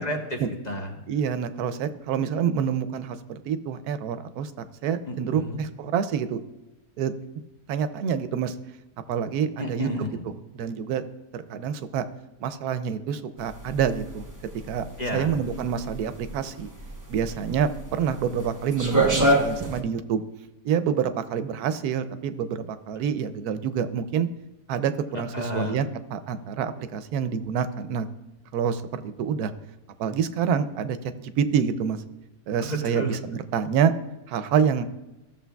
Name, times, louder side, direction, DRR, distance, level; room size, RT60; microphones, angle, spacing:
voice 1, 0.0-0.9 5.1-5.6 9.6-10.2 15.0-15.3 25.1-25.9 32.6-33.1, equal, 35° left, 1 dB, 0.9 m, -31 dB
voice 2, 1.1-6.4 7.0-7.1 7.7-8.5 9.1-9.9 10.5-11.0 11.3-12.0 12.4-14.2 14.7-14.8 15.1-16.7 17.1-20.2 20.6-24.3 24.7-28.0 28.5-29.5 30.0-32.0 32.5-33.9 34.3-34.8, right 7 dB, 80° right, 11 dB, 1.1 m, -27 dB
sound 1, 13.4-19.8, right 1 dB, 15° right, 0.7 m, -26 dB
14.5 x 6.8 x 2.3 m, 1.0 s
omnidirectional pair, 1.6 m